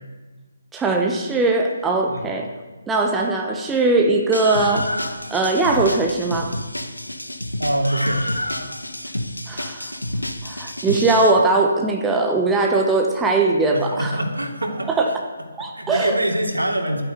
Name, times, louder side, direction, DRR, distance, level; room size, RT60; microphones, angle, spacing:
voice 1, 0.7-2.5 2.9-6.5 9.5-9.9 10.4-14.1 15.0-15.1 15.6-16.2, right 3 dB, 5° right, 1 dB, 1.0 m, -20 dB
Screaming, 4.3-11.3, left 1 dB, 80° left, 1.5 m, -29 dB
voice 2, 7.6-8.2 13.7-14.9 15.7-17.0, right 1 dB, 75° right, 1 dB, 3.0 m, -24 dB
12.0 x 9.6 x 8.0 m, 1.3 s
figure-of-eight pair, 145°, 0 cm